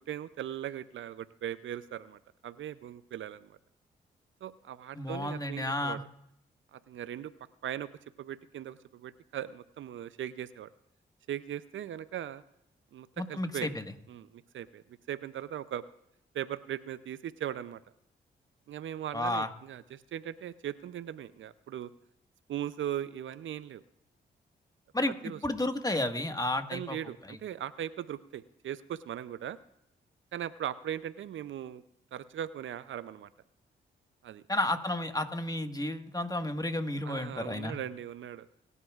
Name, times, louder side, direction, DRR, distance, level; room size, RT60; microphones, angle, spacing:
voice 1, 0.1-3.6 4.4-6.0 6.7-7.3 7.6-7.9 8.2-10.7 11.3-12.4 12.9-13.7 14.1-15.8 16.3-17.8 18.7-21.9 22.5-23.8 25.2-25.4 26.7-29.6 30.3-31.8 32.1-33.3 34.2-34.4 37.0-38.5, right 10 dB, 70° right, 15 dB, 0.6 m, -39 dB
voice 2, 4.9-6.0 13.2-13.8 19.1-19.5 24.9-25.1 25.4-27.0 34.5-37.8, left 1 dB, 15° left, 6 dB, 1.6 m, -32 dB
22.0 x 11.0 x 2.4 m, 0.77 s
supercardioid pair, 40°, 21 cm